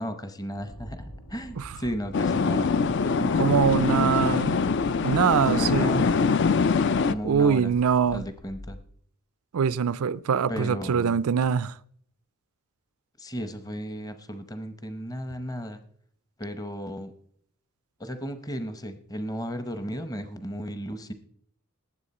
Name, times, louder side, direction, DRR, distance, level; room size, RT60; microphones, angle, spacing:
voice 1, 0.0-2.7 3.0-4.8 5.4-6.2 7.0-7.7 8.1-8.8 10.5-11.1 13.2-15.8 16.4-17.1 18.0-21.1, equal, 15° left, 0.8 m, -34 dB
sound 1, 0.5-8.8, equal, 85° left, 2.0 m, -45 dB
sound 2, 2.1-7.1, left 5 dB, 50° left, 0.4 m, -23 dB
voice 2, 3.4-4.5 5.0-6.1 7.2-8.2 9.5-11.7, right 7 dB, 75° right, 0.4 m, -23 dB
19.0 x 7.9 x 4.2 m
head